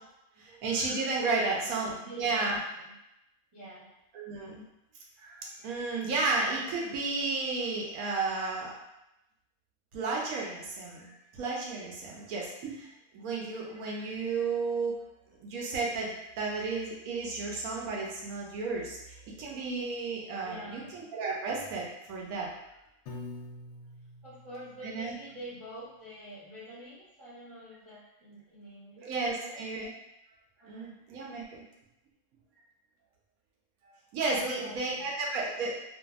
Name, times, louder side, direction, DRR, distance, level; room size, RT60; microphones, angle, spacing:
voice 1, 0.4-2.6 4.1-4.6 5.2-8.7 9.9-15.0 15.4-22.5 24.8-25.1 29.0-29.9 30.6-31.6 33.8-35.7, right 3 dB, 75° right, -2 dB, 1.0 m, -33 dB
voice 2, 1.3-1.7 2.0-2.9 3.5-3.9 20.4-20.9 24.2-29.6 30.6-30.9 34.4-35.1, right 1 dB, 30° right, -12 dB, 0.6 m, -45 dB
Piano, 23.1-25.3, left 2 dB, 60° left, 0.8 m, -45 dB
2.6 x 2.5 x 2.3 m, 0.88 s
omnidirectional pair, 1.6 m